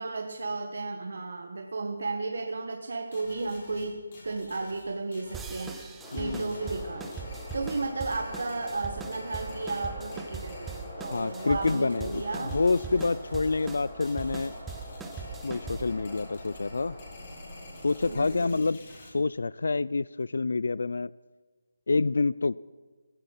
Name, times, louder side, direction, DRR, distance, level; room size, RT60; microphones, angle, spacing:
voice 1, 0.0-5.7 6.1-7.0 7.5-12.6 18.0-18.6, right 3 dB, 55° right, 4 dB, 1.5 m, -34 dB
sound 1, 3.1-19.1, left 2 dB, 30° left, 4.4 m, -50 dB
sound 2, 5.3-16.0, right 5 dB, 5° right, 0.6 m, -41 dB
sound 3, 6.0-18.4, left 1 dB, 10° left, 2.8 m, -44 dB
voice 2, 6.1-6.5 11.1-14.5 15.4-17.0 17.8-18.8 19.1-21.1 21.9-22.6, left 3 dB, 65° left, 21 dB, 0.4 m, -27 dB
15.5 x 15.0 x 5.6 m, 1.4 s
hypercardioid pair, 175°, 0 cm